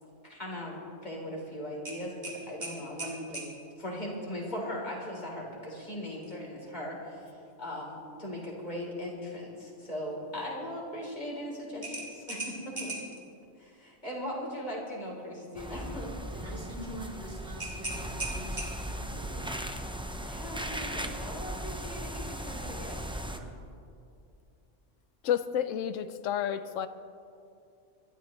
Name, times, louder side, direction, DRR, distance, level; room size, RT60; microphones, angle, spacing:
voice 1, 0.2-3.4 3.8-13.0 13.6-16.2 20.3-23.1, left 1 dB, 35° left, -3 dB, 3.7 m, -39 dB
sound 1, 1.8-3.5 6.1-6.4 6.8-6.9 11.8-13.2 17.6-19.0, right 2 dB, 25° right, 3.0 m, -38 dB
sound 2, 15.5-23.4, right 1 dB, 5° right, 0.5 m, -37 dB
voice 2, 16.3-19.5 23.2-23.6, right 1 dB, 50° right, 0 dB, 2.2 m, -45 dB
voice 3, 25.2-26.9, left 9 dB, 90° left, 12 dB, 1.0 m, -30 dB
26.5 x 13.0 x 3.1 m, 2.5 s
omnidirectional pair, 1.3 m